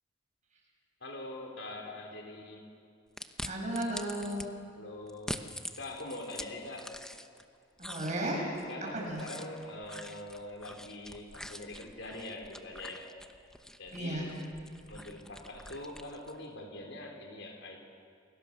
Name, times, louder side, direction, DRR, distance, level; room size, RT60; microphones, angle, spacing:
voice 1, 1.0-2.7 4.8-5.5 5.8-6.9 8.7-13.1 13.8-14.4 14.9-17.9, left 2 dB, 75° left, 2 dB, 4.2 m, -43 dB
sound 1, 3.2-4.5 5.1-7.4 7.8-16.4, left 1 dB, 5° left, 0.9 m, -45 dB
voice 2, 3.4-4.6 7.8-8.5 8.9-9.3 13.9-14.3, right 1 dB, 40° right, -1 dB, 7.5 m, -34 dB
29.0 x 22.5 x 6.8 m, 2.3 s
head